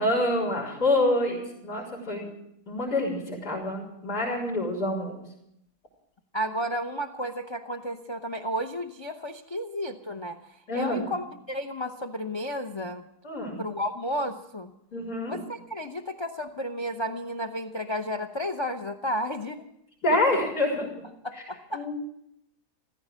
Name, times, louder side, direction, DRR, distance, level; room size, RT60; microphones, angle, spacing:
voice 1, 0.0-2.3 2.7-5.1 10.7-11.1 13.2-13.6 14.9-15.4 20.0-20.9 21.7-22.0, left 1 dB, 70° left, -2 dB, 4.8 m, -27 dB
voice 2, 6.3-13.0 13.6-14.7 15.3-19.6 21.2-21.9, equal, 45° left, 7 dB, 0.3 m, -32 dB
15.0 x 14.5 x 6.3 m, 0.79 s
omnidirectional pair, 1.8 m